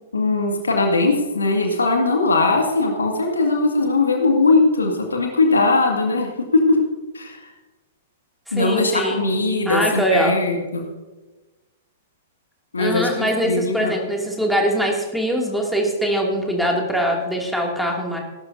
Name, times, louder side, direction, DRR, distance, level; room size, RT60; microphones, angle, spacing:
voice 1, 0.1-6.8 7.1-7.4 8.5-10.9 12.7-13.9, left 3 dB, 80° left, 2 dB, 2.2 m, -20 dB
voice 2, 8.5-9.2 9.6-10.4 12.8-18.2, equal, ahead, -1 dB, 2.5 m, -22 dB
18.5 x 12.0 x 2.7 m, 1.2 s
figure-of-eight pair, 105°, 0 cm